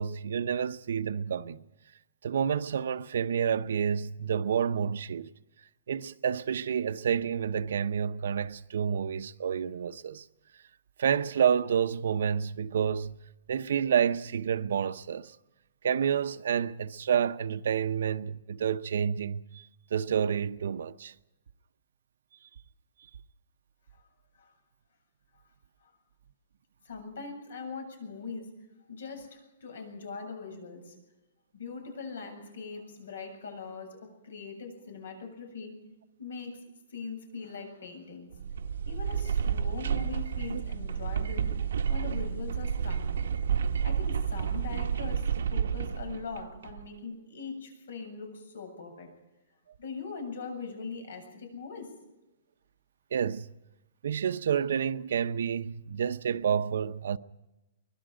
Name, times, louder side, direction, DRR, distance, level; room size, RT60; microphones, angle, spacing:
voice 1, 0.0-1.6 2.2-5.3 5.9-10.2 11.0-13.2 13.5-15.4 15.8-19.6 19.9-21.1 53.1-53.5 54.0-57.2, right 7 dB, 65° right, 0.8 m, -29 dB
voice 2, 26.8-28.5 28.9-31.0 31.5-35.8 36.2-38.4 38.9-41.6 41.9-43.2 43.8-49.1 49.8-52.0, left 5 dB, 90° left, 7.7 m, -41 dB
sound 1, 38.3-46.9, right 7 dB, 90° right, 1.1 m, -30 dB
24.5 x 21.0 x 5.1 m
hypercardioid pair, 175°, 0 cm